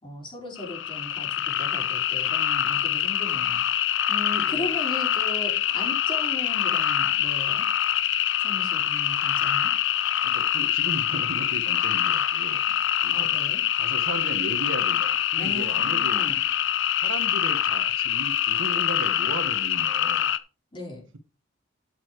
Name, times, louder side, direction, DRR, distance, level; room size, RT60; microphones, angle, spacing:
voice 1, 0.0-3.6 4.1-7.7 8.4-9.7 13.1-13.6 15.4-16.4 20.7-21.0, left 1 dB, 25° left, -2 dB, 4.7 m, -37 dB
sound 1, 0.6-20.4, left 11 dB, 70° left, 0.7 m, -25 dB
voice 2, 4.3-4.7 10.2-12.6 13.0-13.3 13.8-16.2 17.0-20.3, right 2 dB, 70° right, 8 dB, 1.3 m, -36 dB
12.5 x 8.7 x 3.1 m, 0.33 s
head